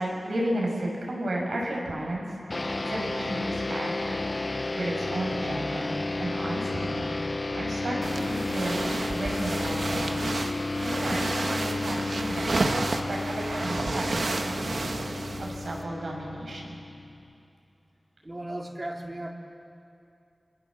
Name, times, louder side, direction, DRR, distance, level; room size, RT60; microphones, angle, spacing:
voice 1, 0.0-2.3 2.8-7.1 7.5-8.8 9.1-10.5 10.8-14.4 14.7-16.8, right 1 dB, 90° right, -2 dB, 6.7 m, -33 dB
sound 1, 2.5-17.3, left 2 dB, 40° left, 0.8 m, -32 dB
sound 2, 8.0-15.8, right 2 dB, 65° right, 1.6 m, -31 dB
voice 2, 18.2-19.3, right 1 dB, 25° right, 1 dB, 2.9 m, -36 dB
29.0 x 25.0 x 7.5 m, 2.7 s
wide cardioid pair, 90°, 0 cm